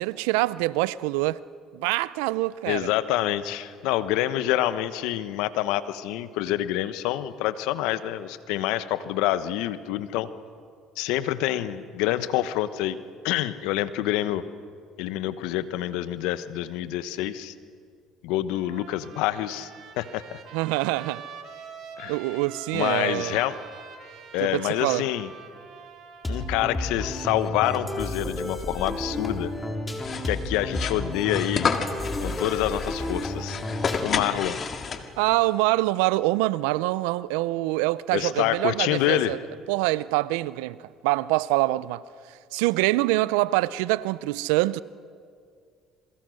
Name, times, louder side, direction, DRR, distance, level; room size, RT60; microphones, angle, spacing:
voice 1, 0.0-1.4 1.7-2.9 20.5-21.2 22.1-23.4 24.4-25.0 35.2-39.4 39.7-40.8 41.0-42.0 42.3-44.8, right 19 dB, 85° right, 0.5 m, -25 dB
voice 2, 2.7-10.3 11.0-13.0 13.2-14.4 15.0-17.5 18.2-19.7 20.0-20.4 22.0-22.1 22.7-23.6 24.3-25.3 26.3-29.5 30.2-31.7 32.2-33.6 34.0-34.6 38.1-39.3, left 13 dB, 80° left, 1.1 m, -27 dB
Trumpet, 18.5-26.7, right 6 dB, 60° right, 3.3 m, -44 dB
sound 1, 26.2-34.4, left 1 dB, 15° left, 3.7 m, -32 dB
sound 2, 30.0-35.3, left 5 dB, 45° left, 2.1 m, -31 dB
27.5 x 23.0 x 6.4 m
supercardioid pair, 70°, 0 cm